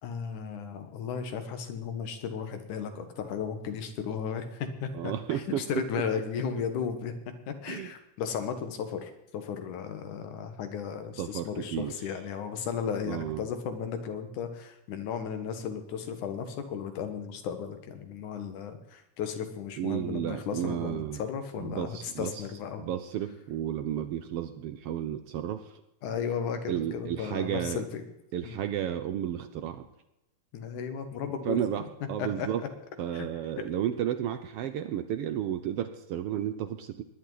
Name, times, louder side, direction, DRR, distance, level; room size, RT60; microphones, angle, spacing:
voice 1, 0.0-7.1 7.5-22.8 26.0-28.0 28.4-28.6 30.5-31.6 32.2-32.5 33.1-33.3 33.6-33.7, left 7 dB, 85° left, 7 dB, 3.0 m, -35 dB
voice 2, 4.9-5.6 7.7-7.9 11.2-11.9 13.1-13.4 19.8-21.2 21.6-22.4 22.8-25.8 26.7-27.8 28.3-29.9 31.4-32.6 33.0-37.0, right 10 dB, 75° right, 10 dB, 1.4 m, -32 dB
20.0 x 11.0 x 4.0 m, 0.88 s
omnidirectional pair, 3.4 m